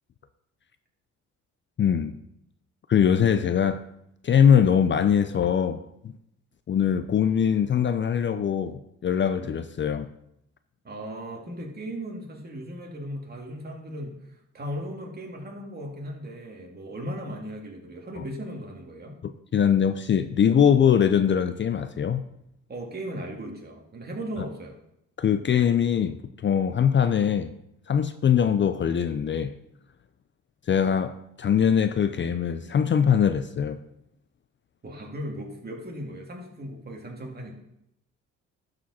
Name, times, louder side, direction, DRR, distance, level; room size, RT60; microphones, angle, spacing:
voice 1, 1.8-2.2 2.9-3.8 4.2-6.1 6.7-10.1 19.2-22.3 25.2-27.5 27.9-29.5 30.7-33.8, left 8 dB, 40° left, 0.5 m, -22 dB
voice 2, 10.8-19.2 22.7-24.7 34.8-37.5, equal, 30° right, 2.4 m, -37 dB
12.5 x 5.0 x 4.2 m
cardioid pair, 90°, 30 cm